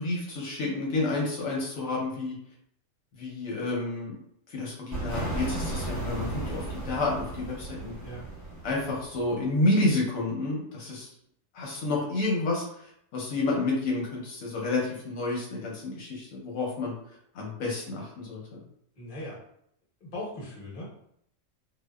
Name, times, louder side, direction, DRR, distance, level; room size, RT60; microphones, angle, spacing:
voice 1, 0.0-2.4 3.1-4.2 4.5-7.9 8.6-11.1 11.5-16.9 17.3-18.6, left 2 dB, 85° left, -3 dB, 1.1 m, -30 dB
sound 1, 4.9-9.6, right 2 dB, 15° right, 1.0 m, -35 dB
voice 2, 19.0-19.4 20.0-20.8, left 1 dB, 45° left, -6 dB, 1.1 m, -38 dB
2.8 x 2.2 x 2.2 m, 0.70 s
omnidirectional pair, 1.4 m